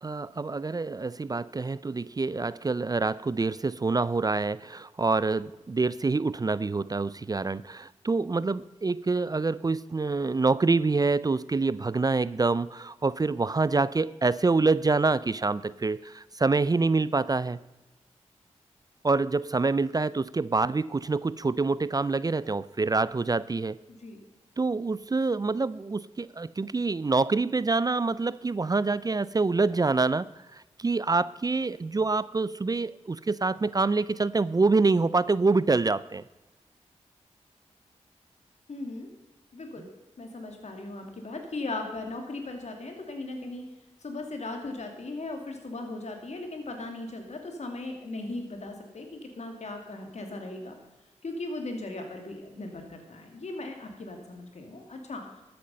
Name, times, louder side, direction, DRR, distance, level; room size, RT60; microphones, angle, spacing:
voice 1, 0.0-17.6 19.0-23.8 24.6-36.2, right 3 dB, 30° right, 18 dB, 0.4 m, -26 dB
voice 2, 38.7-39.1 39.5-39.8 40.2-43.6 44.0-50.7 51.2-55.2, left 2 dB, 65° left, 4 dB, 2.5 m, -38 dB
13.0 x 8.6 x 5.4 m, 1.1 s
cardioid pair, 40°, 12 cm